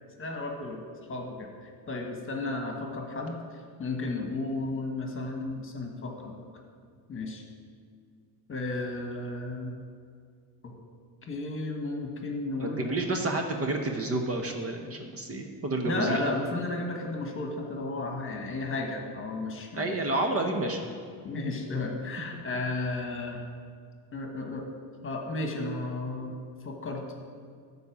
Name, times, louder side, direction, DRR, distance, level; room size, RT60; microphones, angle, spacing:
voice 1, 0.2-0.8 1.1-1.5 1.9-3.4 3.8-6.3 7.1-7.4 8.5-9.7 10.6-10.7 11.3-12.9 15.8-20.0 21.2-23.4 24.1-24.6 25.0-26.3 26.6-27.0, left 2 dB, 30° left, 2 dB, 1.4 m, -33 dB
voice 2, 12.6-16.3 19.8-20.8, right 2 dB, 35° right, 3 dB, 1.0 m, -30 dB
11.5 x 4.2 x 7.1 m, 2.1 s
cardioid pair, 110°, 42 cm